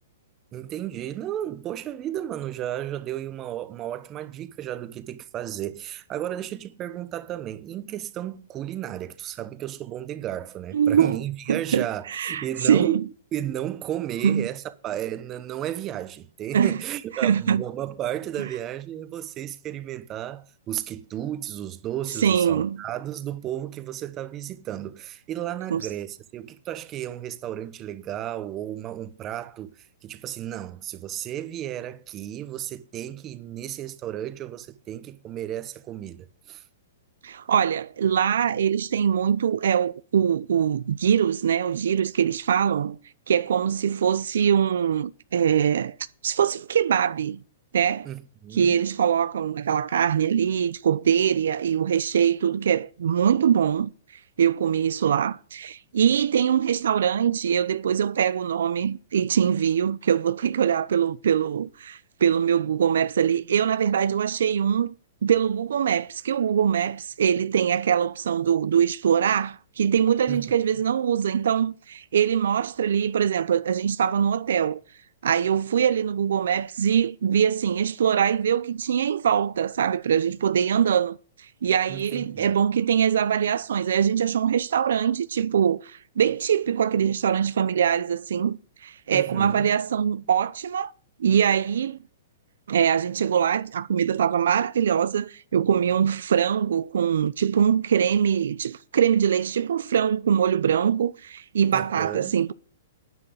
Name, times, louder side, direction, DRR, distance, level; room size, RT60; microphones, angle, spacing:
voice 1, 0.5-36.6 48.0-48.8 70.3-70.5 81.9-82.5 89.1-89.7 101.7-102.3, right 12 dB, 25° right, 1.1 m, -33 dB
voice 2, 10.7-11.2 11.5-13.0 14.2-14.5 16.5-16.8 17.2-17.6 22.2-22.8 25.7-25.8 37.2-43.0 43.3-46.0 46.2-47.4 47.7-48.1 48.5-53.9 54.4-64.9 65.2-74.8 75.2-90.9 91.2-92.0 92.7-102.5, right 8 dB, 75° right, 0.7 m, -23 dB
9.9 x 9.4 x 8.0 m
hypercardioid pair, 150°, 0 cm